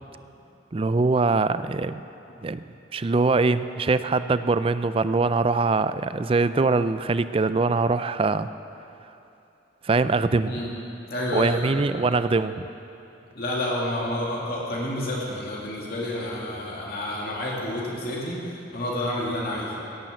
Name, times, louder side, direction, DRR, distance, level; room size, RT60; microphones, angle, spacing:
voice 1, 0.7-2.0 2.4-2.6 2.9-8.5 9.8-10.5 11.3-12.6, right 3 dB, 30° right, 13 dB, 0.4 m, -23 dB
voice 2, 11.1-11.8 13.3-19.8, left 1 dB, 50° left, -4 dB, 2.5 m, -29 dB
17.0 x 10.5 x 7.8 m, 2.8 s
head